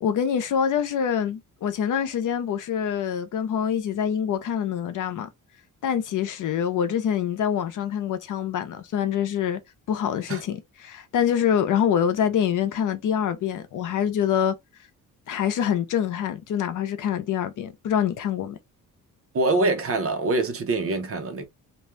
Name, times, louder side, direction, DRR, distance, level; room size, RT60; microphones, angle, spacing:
voice 1, 0.0-5.3 5.8-9.6 9.9-14.5 15.3-18.6, left 8 dB, 65° left, 0.7 m, -25 dB
voice 2, 19.3-21.4, right 2 dB, 40° right, 0.8 m, -24 dB
2.6 x 2.3 x 3.1 m
cardioid pair, 130°, 33 cm